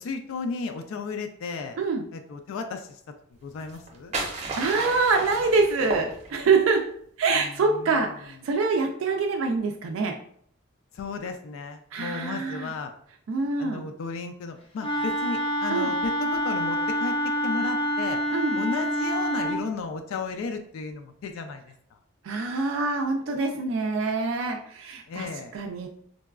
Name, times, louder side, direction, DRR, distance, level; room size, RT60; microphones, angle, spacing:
voice 1, 0.0-1.8 2.1-3.0 3.4-4.1 7.4-8.1 10.9-12.9 13.6-17.2 17.4-18.2 18.5-21.7 25.1-25.5, left 4 dB, 85° left, 6 dB, 0.3 m, -34 dB
sound 1, 3.6-6.6, right 2 dB, 35° right, 0.6 m, -34 dB
voice 2, 4.3-6.9 7.2-10.2 11.9-12.7 13.3-13.9 15.7-15.9 18.3-18.6 22.2-25.3 25.5-25.9, right 4 dB, 75° right, 3 dB, 0.3 m, -25 dB
Wind instrument woodwind instrument, 14.8-19.6, equal, 30° left, 0.5 m, -27 dB
3.8 x 2.2 x 2.3 m, 0.64 s
head